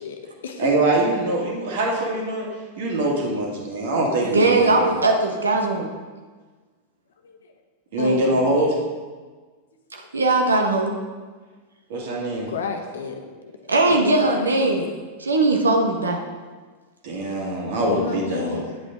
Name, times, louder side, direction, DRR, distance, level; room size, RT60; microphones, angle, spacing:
voice 1, 0.0-0.9 7.2-7.4 7.9-8.7 12.5-13.3 13.9-14.8 17.8-18.7, left 5 dB, 65° left, 5 dB, 1.0 m, -31 dB
voice 2, 0.6-2.5 2.8-4.9 7.9-8.7 11.9-12.5 17.0-18.6, right 2 dB, 55° right, -1 dB, 2.2 m, -23 dB
voice 3, 4.3-5.9 10.1-10.9 13.7-14.8 15.2-16.2, right 2 dB, 75° right, 2 dB, 1.0 m, -19 dB
9.7 x 8.1 x 3.7 m, 1.4 s
figure-of-eight pair, 90°, 0 cm